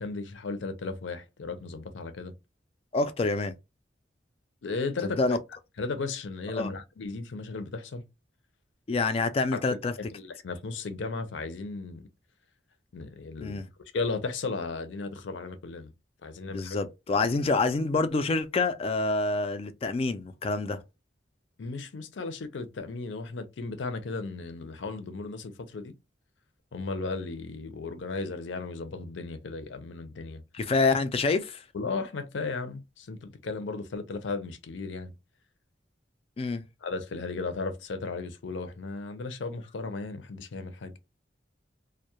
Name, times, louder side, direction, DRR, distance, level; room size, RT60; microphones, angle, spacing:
voice 1, 0.0-2.3 4.6-5.4 5.8-8.0 9.5-9.6 10.0-12.1 12.9-13.6 13.9-15.9 16.2-16.8 21.6-25.9 26.7-30.4 31.7-35.1 36.8-41.0, left 3 dB, 85° left, 0.5 m, -35 dB
voice 2, 2.9-3.5 5.0-5.4 6.5-6.7 8.9-9.9 13.4-13.6 16.4-20.8 30.5-31.6 36.4-36.6, left 3 dB, 30° left, 0.3 m, -27 dB
2.2 x 2.1 x 2.8 m
head